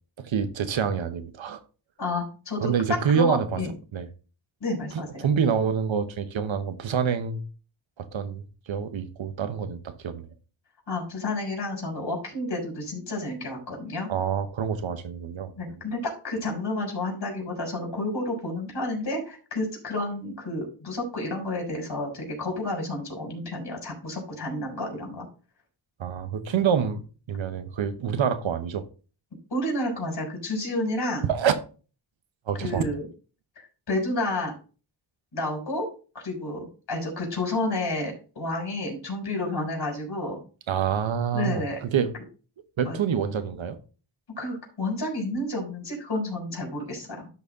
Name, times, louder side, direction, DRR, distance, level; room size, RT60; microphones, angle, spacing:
voice 1, 0.2-1.6 2.6-3.6 3.9-4.1 4.9-7.4 8.0-10.3 14.1-15.5 26.0-28.9 31.3-31.5 32.5-32.9 40.7-42.1 42.8-43.8, right 7 dB, 80° right, 1.0 m, -27 dB
voice 2, 2.0-2.7 3.1-3.7 4.6-5.3 10.9-14.1 15.6-25.3 29.5-31.3 32.6-33.1 33.6-34.5 35.3-35.9 36.1-40.4 41.3-41.8 42.9-43.0 44.4-47.3, left 2 dB, 60° left, 4.3 m, -30 dB
12.5 x 4.2 x 3.6 m
cardioid pair, 75°, 45 cm